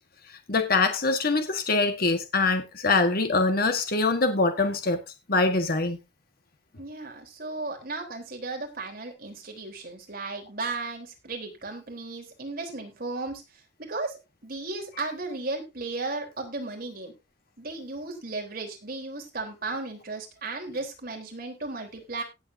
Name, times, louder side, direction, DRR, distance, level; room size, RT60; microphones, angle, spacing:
voice 1, 0.5-5.0 5.3-6.0, left 3 dB, 55° left, 6 dB, 1.5 m, -24 dB
voice 2, 6.8-13.4 13.9-17.1 17.6-22.2, right 3 dB, 55° right, 2 dB, 3.7 m, -35 dB
18.0 x 7.8 x 2.7 m, 0.25 s
head